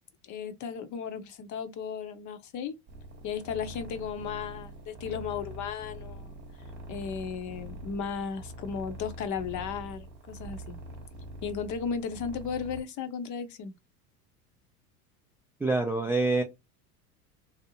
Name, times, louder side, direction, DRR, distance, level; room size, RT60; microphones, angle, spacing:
voice 1, 0.2-2.7 3.2-6.4 6.9-10.8 11.4-13.7, left 6 dB, 40° left, 0.7 m, -35 dB
sound 1, 2.9-12.8, right 1 dB, 25° right, 1.0 m, -44 dB
voice 2, 15.6-16.4, right 2 dB, 5° right, 0.3 m, -26 dB
2.7 x 2.0 x 2.8 m
hypercardioid pair, 85°, 45 cm